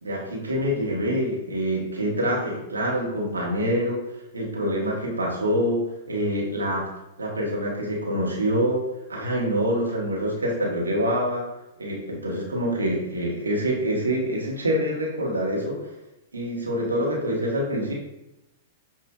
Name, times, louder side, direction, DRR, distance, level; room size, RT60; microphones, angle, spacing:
voice 1, 0.0-4.0 4.3-6.9 7.2-8.8 9.1-11.4 11.8-15.9 16.3-17.9, equal, 85° right, -3 dB, 1.1 m, -26 dB
7.1 x 2.5 x 2.3 m, 0.92 s
figure-of-eight pair, 100°, 0 cm